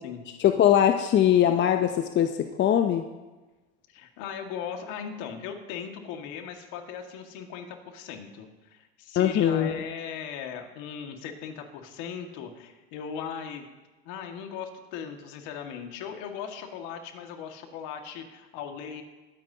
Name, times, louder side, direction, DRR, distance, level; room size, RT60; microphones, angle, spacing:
voice 1, 0.4-3.0 9.1-9.8, left 10 dB, 35° left, 6 dB, 0.7 m, -21 dB
voice 2, 3.9-13.7 14.1-19.0, left 7 dB, 65° left, 4 dB, 2.0 m, -38 dB
21.5 x 9.6 x 2.9 m, 1.2 s
supercardioid pair, 105°, 33 cm